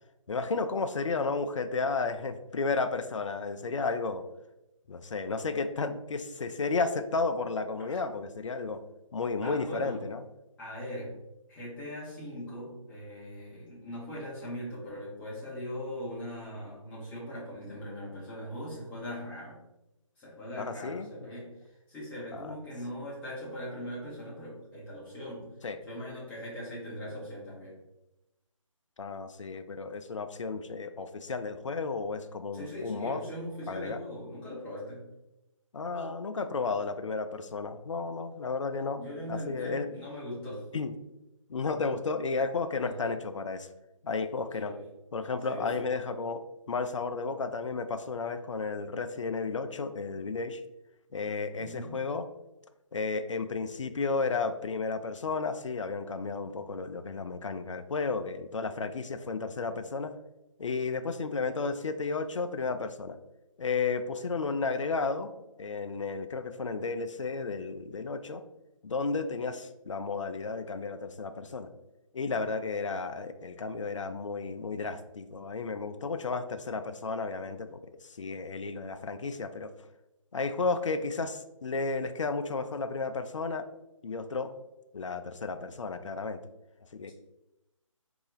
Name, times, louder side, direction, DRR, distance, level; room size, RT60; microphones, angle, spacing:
voice 1, 0.3-4.3 4.9-8.8 9.1-10.2 20.6-21.1 22.3-22.5 25.6-25.8 29.0-33.3 33.7-34.0 35.7-39.0 39.3-39.9 40.7-40.9 41.5-43.7 44.0-44.7 45.1-50.6 51.1-52.3 52.9-60.1 60.6-63.2 63.6-65.3 65.6-68.4 68.8-71.7 72.1-79.7 80.3-83.7 84.0-84.5 84.9-86.4 86.9-87.1, left 4 dB, 65° left, 9 dB, 0.4 m, -33 dB
voice 2, 9.4-10.0 10.6-11.2 11.5-19.6 20.2-21.5 21.9-25.5 25.8-27.8 32.5-35.1 38.9-40.7 42.8-42.9 44.6-44.8 45.5-45.9 51.6-52.0, equal, 10° left, -8 dB, 1.0 m, -40 dB
4.0 x 2.9 x 3.8 m, 0.94 s
figure-of-eight pair, 150°, 17 cm